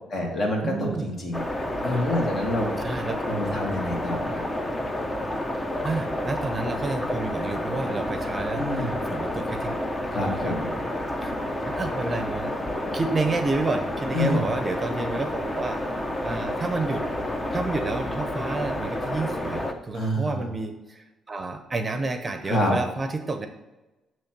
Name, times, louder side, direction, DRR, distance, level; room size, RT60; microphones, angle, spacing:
voice 1, 0.1-1.4 1.8-2.7 3.3-4.4 8.5-8.9 10.1-10.7 14.1-14.4 19.9-20.4 22.5-22.7, left 1 dB, 45° left, 0 dB, 2.0 m, -27 dB
voice 2, 0.6-1.1 2.8-3.2 5.8-9.7 10.2-10.6 11.2-11.3 11.7-12.6 12.9-17.1 17.5-23.5, right 3 dB, 30° right, 7 dB, 0.7 m, -30 dB
sound 1, 1.3-19.7, left 1 dB, 20° left, 0.8 m, -30 dB
8.4 x 3.1 x 6.0 m, 1.1 s
cardioid pair, 90°, 0 cm